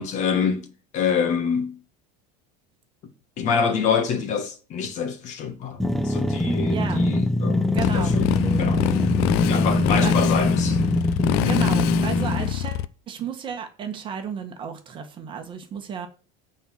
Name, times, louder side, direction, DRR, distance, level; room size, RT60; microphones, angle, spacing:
voice 1, 0.0-1.8 3.4-8.3 8.6-8.8 9.5-10.9, left 6 dB, 40° left, 2.0 m, -26 dB
sound 1, 5.8-12.5, left 1 dB, ahead, 0.5 m, -23 dB
voice 2, 6.7-7.1 7.7-8.1 9.5-9.7 10.0-10.1 11.4-16.1, right 7 dB, 25° right, 1.5 m, -33 dB
Motorcycle, 7.8-12.9, left 15 dB, 55° left, 0.6 m, -25 dB
10.5 x 4.5 x 7.5 m
cardioid pair, 175°, 20 cm